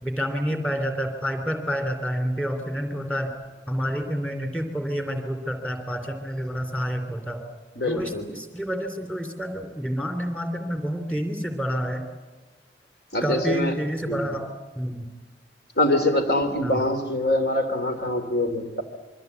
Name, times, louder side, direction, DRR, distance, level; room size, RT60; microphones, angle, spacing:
voice 1, 0.0-3.3 3.7-7.4 7.9-12.1 13.2-14.5 14.7-15.1 16.6-16.8, equal, 5° left, 6 dB, 3.2 m, -28 dB
voice 2, 7.8-8.3 13.1-13.7 14.1-14.2 15.8-18.8, left 1 dB, 60° left, 6 dB, 2.9 m, -24 dB
27.5 x 23.0 x 8.3 m, 1.3 s
head